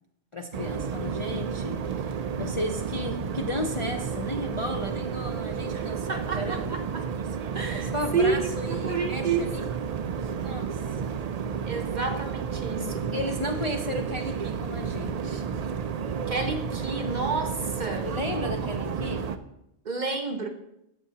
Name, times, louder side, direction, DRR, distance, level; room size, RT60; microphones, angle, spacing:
voice 1, 0.3-6.7 7.7-9.6 10.4-11.2 13.1-15.5 18.0-19.3, left 1 dB, 40° left, 3 dB, 0.4 m, -34 dB
sound 1, 0.5-19.4, right 7 dB, 85° right, 0.3 m, -31 dB
voice 2, 5.7-7.0 7.5-9.8 11.6-13.2 16.3-18.2 19.8-20.5, right 4 dB, 45° right, 5 dB, 0.7 m, -30 dB
13.0 x 6.9 x 2.8 m, 0.82 s
omnidirectional pair, 1.3 m